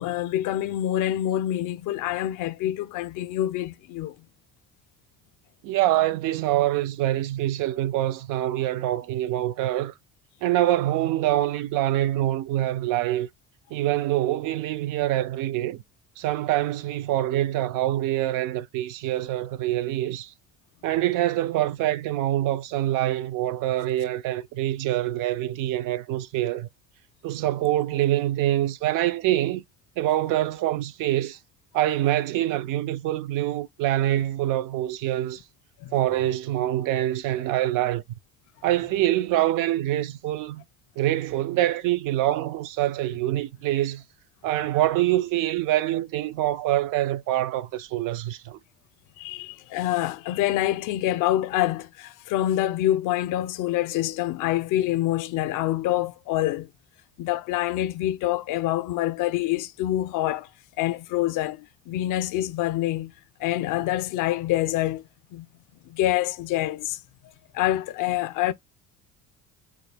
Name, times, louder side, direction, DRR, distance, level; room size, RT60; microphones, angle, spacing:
voice 1, 0.0-4.2 35.8-35.9 49.2-56.7 57.2-60.5 60.8-63.1 63.4-65.0 65.3-65.5 65.8-67.0 67.5-68.5, left 14 dB, 65° left, 0.5 m, -26 dB
voice 2, 5.6-9.9 10.4-13.3 13.7-15.8 16.2-20.3 20.8-26.7 27.2-29.6 30.0-31.4 31.7-35.4 35.9-38.0 38.6-40.6 41.0-44.0 44.4-48.6, right 14 dB, 70° right, 0.5 m, -25 dB
3.7 x 2.3 x 3.3 m
cardioid pair, 115°, 34 cm